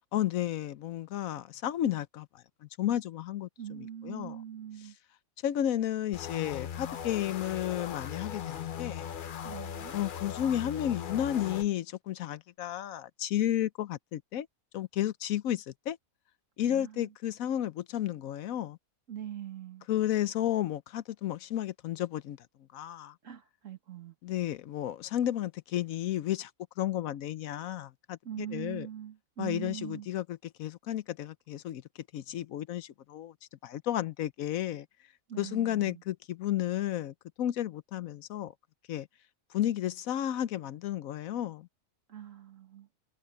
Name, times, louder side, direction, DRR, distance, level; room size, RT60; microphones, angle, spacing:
voice 1, 0.1-4.4 5.4-9.1 9.9-14.5 14.7-16.0 16.6-18.8 19.9-22.4 22.7-23.1 24.2-26.5 26.8-28.9 29.4-31.8 32.1-33.3 33.6-34.9 35.4-38.5 38.9-39.1 39.5-41.7, left 12 dB, 75° left, 1.1 m, -32 dB
voice 2, 3.6-5.0 9.4-10.0 16.7-17.1 19.1-19.9 23.2-24.1 28.2-30.1 35.3-36.0 42.1-42.9, right 10 dB, 65° right, 2.0 m, -42 dB
sound 1, 6.1-11.7, left 8 dB, 50° left, 0.6 m, -39 dB
omnidirectional pair, 1.5 m